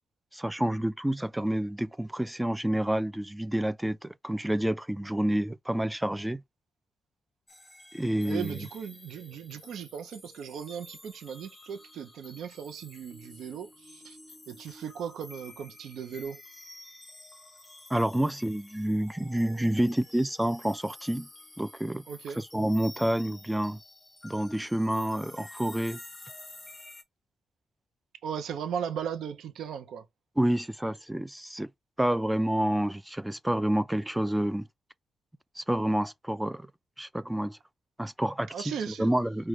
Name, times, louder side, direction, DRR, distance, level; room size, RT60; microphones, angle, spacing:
voice 1, 0.3-6.4 7.9-8.6 17.9-21.3 21.6-22.0 22.4-23.8 24.2-26.0 30.4-31.7 32.0-34.7 35.6-36.7 37.0-37.6 38.0-38.7 39.0-39.5, right 1 dB, 10° right, 0.3 m, -28 dB
sound 1, 7.5-27.0, left 2 dB, 20° left, 1.0 m, -50 dB
voice 2, 8.2-14.2 14.5-16.4 22.1-22.4 28.2-30.1 38.5-39.1, right 8 dB, 85° right, 0.5 m, -37 dB
4.9 x 2.2 x 3.1 m
cardioid pair, 95°, 0 cm